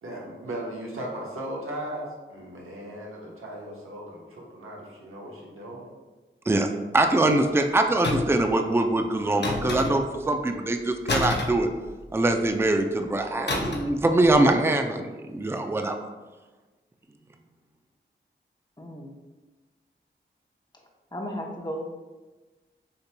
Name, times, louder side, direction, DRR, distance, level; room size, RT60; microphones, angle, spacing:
voice 1, 0.0-5.9, right 1 dB, 85° right, -3 dB, 1.1 m, -37 dB
voice 2, 6.9-11.7 12.1-16.1, right 2 dB, 10° right, 5 dB, 0.4 m, -23 dB
sound 1, 8.0-8.5 9.4-10.2 11.1-12.3 13.5-14.0 14.2-14.5, left 2 dB, 55° left, 0.7 m, -29 dB
voice 3, 18.8-19.1 21.1-21.8, equal, 20° left, 0 dB, 0.9 m, -34 dB
6.6 x 2.9 x 2.3 m, 1.2 s
cardioid pair, 40°, 21 cm